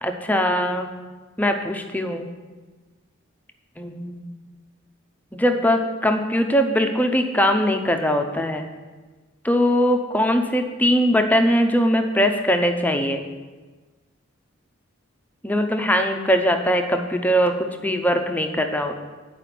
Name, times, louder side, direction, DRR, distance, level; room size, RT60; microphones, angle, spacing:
voice 1, 0.0-0.9 1.4-2.3 3.8-4.3 5.3-8.7 9.4-13.2 15.4-19.0, equal, 10° left, 5 dB, 0.6 m, -21 dB
9.7 x 5.0 x 5.9 m, 1.3 s
head